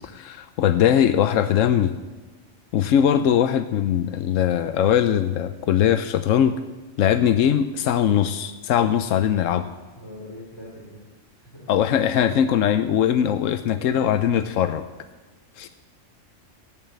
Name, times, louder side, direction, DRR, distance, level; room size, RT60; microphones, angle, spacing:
voice 1, 0.1-1.9 2.7-6.5 7.0-9.7 11.7-14.9 15.6-15.7, left 9 dB, 90° left, 11 dB, 1.0 m, -20 dB
voice 2, 10.0-11.0 11.3-11.7, left 1 dB, 20° left, -5 dB, 3.2 m, -42 dB
17.0 x 7.3 x 8.0 m, 1.3 s
omnidirectional pair, 1.3 m